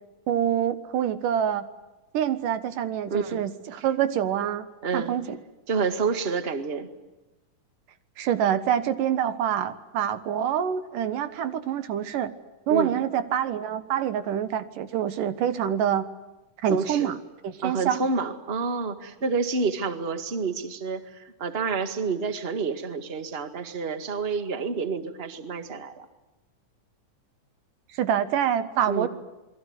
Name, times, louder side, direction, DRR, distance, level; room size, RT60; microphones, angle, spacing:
voice 1, 0.3-1.7 2.1-4.7 4.9-5.4 8.2-12.3 12.7-16.0 16.6-18.0 27.9-29.1, right 9 dB, 90° right, 11 dB, 3.0 m, -26 dB
voice 2, 3.1-3.4 3.8-3.9 4.8-5.1 5.7-6.9 12.7-13.0 16.7-17.1 17.6-26.0 28.9-29.1, right 4 dB, 25° right, 8 dB, 1.5 m, -29 dB
28.5 x 22.0 x 9.6 m, 1.0 s
omnidirectional pair, 3.6 m